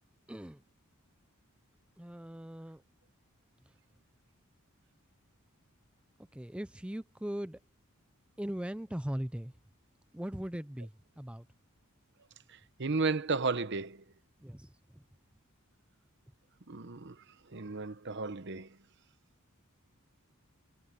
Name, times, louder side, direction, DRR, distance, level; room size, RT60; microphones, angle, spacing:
voice 1, 0.3-0.6 2.0-2.8 3.7-3.8 6.3-7.6 8.4-9.5 10.1-11.5 14.4-15.0, equal, 5° right, 0.5 m, -39 dB
voice 2, 12.8-14.0 16.7-17.1 17.5-18.7, right 4 dB, 50° right, 0.9 m, -33 dB
head